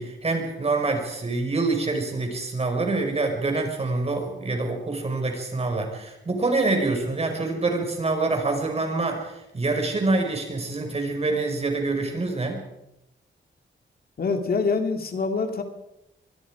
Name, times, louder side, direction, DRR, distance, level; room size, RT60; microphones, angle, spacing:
voice 1, 0.0-12.6, right 3 dB, 30° right, 3 dB, 5.3 m, -26 dB
voice 2, 14.2-15.6, left 4 dB, 50° left, 5 dB, 2.6 m, -25 dB
25.5 x 22.5 x 5.0 m, 0.87 s
wide cardioid pair, 160°, 19 cm